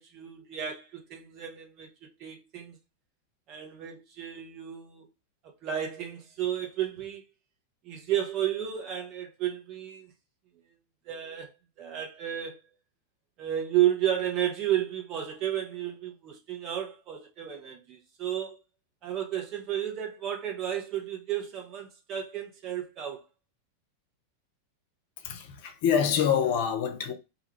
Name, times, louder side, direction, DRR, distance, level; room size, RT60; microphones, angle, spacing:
voice 1, 0.0-2.8 3.5-5.1 5.4-7.2 7.8-10.1 11.1-11.5 11.8-12.6 13.4-18.6 19.0-23.2, right 11 dB, 35° right, 0.8 m, -32 dB
voice 2, 25.2-27.1, left 8 dB, 50° left, 0.5 m, -26 dB
2.3 x 2.2 x 3.1 m
figure-of-eight pair, 90°, 0 cm